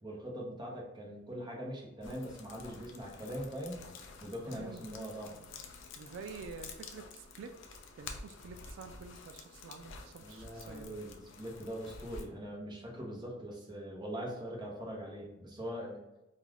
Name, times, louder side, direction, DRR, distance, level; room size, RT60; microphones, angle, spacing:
voice 1, 0.0-3.8 4.2-5.3 10.2-16.0, equal, 25° right, -2 dB, 0.7 m, -42 dB
sound 1, 2.0-12.3, left 4 dB, 85° left, 0.4 m, -50 dB
voice 2, 4.5-4.9 5.3-7.5 8.0-11.0, right 5 dB, 85° right, 7 dB, 0.3 m, -49 dB
2.4 x 2.2 x 3.3 m, 0.95 s
head